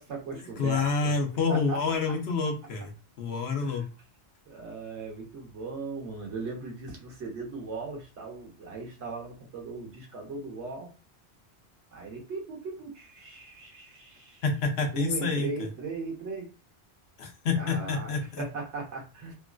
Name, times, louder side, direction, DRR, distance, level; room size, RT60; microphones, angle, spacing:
voice 1, 0.0-1.1 1.5-1.9 3.6-3.9 4.5-10.9 11.9-14.4 14.9-16.5 17.5-19.3, right 4 dB, 85° right, 1 dB, 1.2 m, -38 dB
voice 2, 0.6-2.9 3.2-3.8 14.4-15.5 17.2-18.4, left 4 dB, 70° left, 3 dB, 0.9 m, -28 dB
3.0 x 2.4 x 2.2 m, 0.32 s
omnidirectional pair, 1.1 m